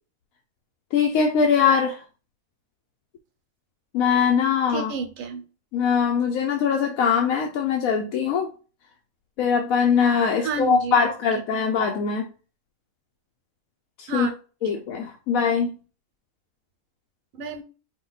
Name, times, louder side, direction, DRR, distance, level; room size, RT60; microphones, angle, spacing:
voice 1, 0.9-2.0 3.9-4.9 5.7-8.5 9.4-12.3 14.0-14.3 14.6-15.7, left 6 dB, 80° left, 1.0 m, -22 dB
voice 2, 4.7-5.4 10.4-11.1 14.1-14.3 17.3-17.6, right 5 dB, 75° right, 1.1 m, -30 dB
4.8 x 2.2 x 3.9 m
omnidirectional pair, 1.5 m